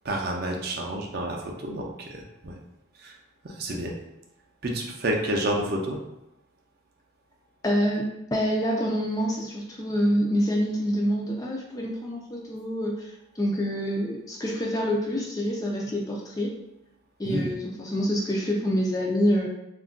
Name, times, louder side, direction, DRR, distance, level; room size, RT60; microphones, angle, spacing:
voice 1, 0.0-2.5 3.0-3.2 3.4-3.9 4.6-6.0 17.2-17.5, right 1 dB, 50° right, 0 dB, 0.5 m, -29 dB
voice 2, 7.6-13.1 13.4-16.5 17.2-19.5, equal, 20° left, -2 dB, 0.3 m, -26 dB
2.4 x 2.1 x 3.6 m, 0.88 s
head